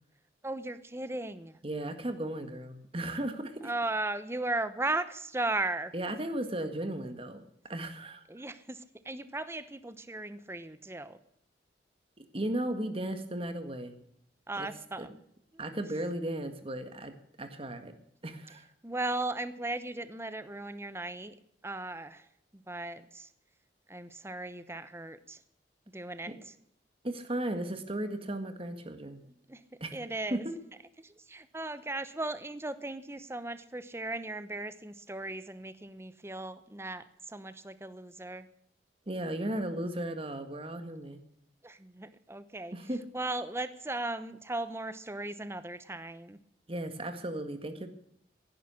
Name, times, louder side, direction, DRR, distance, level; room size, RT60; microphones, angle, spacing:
voice 1, 0.4-1.6 3.6-5.9 8.3-11.2 14.5-15.2 18.8-21.3 21.6-22.2 22.5-23.3 23.9-25.4 25.9-26.4 29.1-29.2 29.5-29.6 29.9-30.5 31.0-38.5 41.6-42.7 43.1-46.4, right 2 dB, 15° right, 13 dB, 0.9 m, -37 dB
voice 2, 1.6-3.7 5.9-7.4 7.7-8.2 12.2-14.0 14.5-14.7 15.0-15.1 15.6-17.9 18.2-18.7 26.3-26.4 27.0-29.2 29.8-30.0 30.3-30.5 39.1-41.2 42.7-43.0 46.7-47.9, right 1 dB, 30° right, 8 dB, 1.7 m, -35 dB
16.5 x 10.5 x 6.4 m, 0.72 s
head